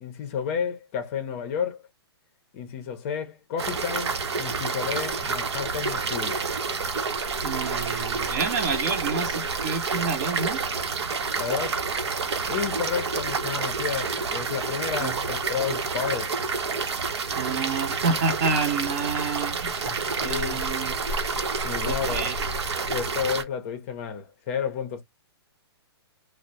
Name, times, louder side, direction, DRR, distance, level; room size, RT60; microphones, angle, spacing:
voice 1, 0.0-1.8 2.5-6.4 11.4-11.8 12.4-16.4 19.7-20.6 21.6-22.3 22.9-25.0, left 7 dB, 30° left, 0.6 m, -31 dB
sound 1, 3.6-23.4, right 4 dB, 85° right, 0.8 m, -29 dB
voice 2, 7.4-10.6 15.0-15.2 17.4-21.0 21.8-22.3, right 4 dB, 40° right, 0.7 m, -29 dB
2.3 x 2.0 x 2.8 m
hypercardioid pair, 155°, 14 cm